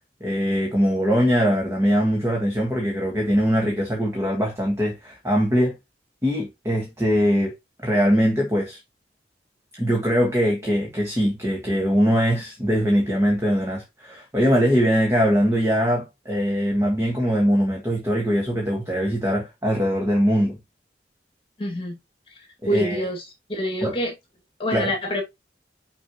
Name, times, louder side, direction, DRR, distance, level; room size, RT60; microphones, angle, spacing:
voice 1, 0.2-5.7 6.2-7.5 7.8-8.8 9.8-20.6 22.7-23.1 23.8-24.0 24.7-24.9, equal, 15° right, 1.6 m, -22 dB
voice 2, 21.6-22.0 22.7-24.1 24.6-25.2, equal, 30° left, 2.1 m, -26 dB
6.2 x 5.4 x 3.0 m
head